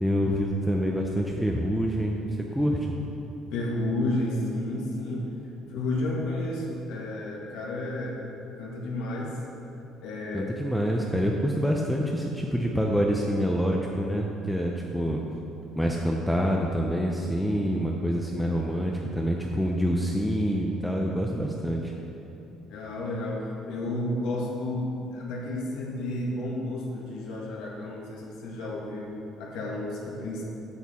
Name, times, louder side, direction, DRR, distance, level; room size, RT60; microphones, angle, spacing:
voice 1, 0.0-2.9 10.3-15.2 15.8-21.9, equal, ahead, -1 dB, 0.5 m, -26 dB
voice 2, 3.5-5.3 5.7-8.2 8.6-9.3 10.0-10.5 22.7-30.4, left 1 dB, 90° left, -3 dB, 1.6 m, -31 dB
8.3 x 8.1 x 4.2 m, 2.9 s
cardioid pair, 155°, 0 cm